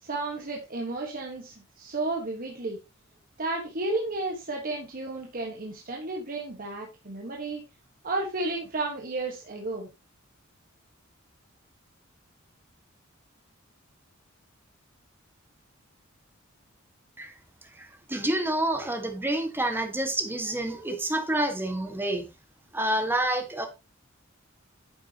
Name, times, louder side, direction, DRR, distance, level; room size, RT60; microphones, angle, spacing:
voice 1, 0.0-2.8 3.4-7.6 8.0-9.9, right 2 dB, 45° right, 1.5 m, -32 dB
voice 2, 17.7-22.2 22.7-23.7, right 1 dB, 10° right, 1.6 m, -28 dB
9.8 x 7.4 x 2.9 m
head